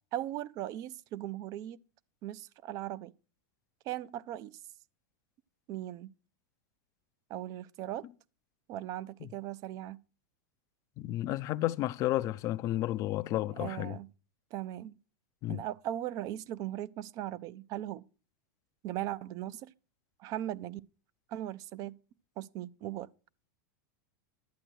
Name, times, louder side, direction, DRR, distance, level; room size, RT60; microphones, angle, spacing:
voice 1, 0.1-1.8 2.2-3.1 3.9-4.6 5.7-6.1 7.3-8.1 8.7-10.0 13.6-14.1 14.5-15.0 15.5-18.0 18.8-19.7 20.2-20.8 21.3-22.0 22.4-23.1, right 13 dB, 35° right, 0.5 m, -38 dB
voice 2, 11.0-14.0 15.4-15.6, left 15 dB, 30° left, 0.5 m, -32 dB
11.5 x 8.8 x 4.5 m
supercardioid pair, 150°, 10 cm